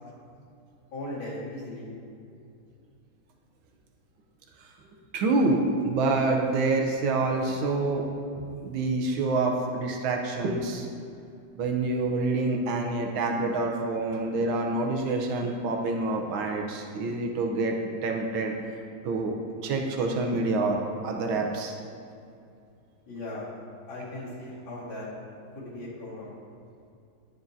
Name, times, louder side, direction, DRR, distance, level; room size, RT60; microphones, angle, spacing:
voice 1, 0.9-1.9 23.1-23.5 23.9-25.1 25.5-26.3, left 1 dB, 65° left, -7 dB, 2.7 m, -37 dB
voice 2, 5.1-8.0 8.6-10.9 11.6-18.5 19.0-19.3 19.6-21.7, right 3 dB, 75° right, 2 dB, 1.5 m, -27 dB
10.0 x 7.2 x 2.7 m, 2.5 s
omnidirectional pair, 2.3 m